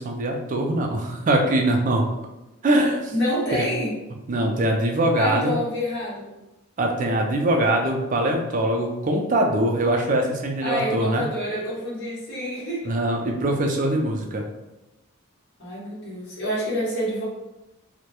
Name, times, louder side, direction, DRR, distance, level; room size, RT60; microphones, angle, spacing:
voice 1, 0.0-2.1 2.6-3.1 3.5-3.6 4.3-5.5 6.8-11.2 12.8-14.4, right 1 dB, 35° right, 2 dB, 0.3 m, -22 dB
voice 2, 3.1-3.9 5.2-6.3 10.6-12.9 15.6-17.2, equal, 55° left, -7 dB, 1.0 m, -27 dB
2.2 x 2.1 x 2.8 m, 0.98 s
head